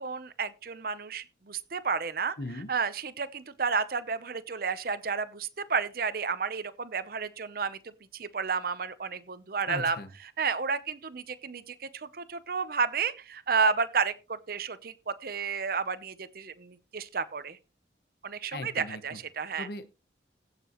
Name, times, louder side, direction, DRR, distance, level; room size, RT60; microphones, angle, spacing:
voice 1, 0.0-2.4 2.7-7.8 8.1-10.0 10.4-17.6 18.2-19.7, right 5 dB, 55° right, 0.7 m, -31 dB
voice 2, 2.4-2.7 9.7-10.1 18.5-19.2 19.6-19.9, left 2 dB, 55° left, 1.0 m, -38 dB
16.0 x 6.8 x 3.0 m
head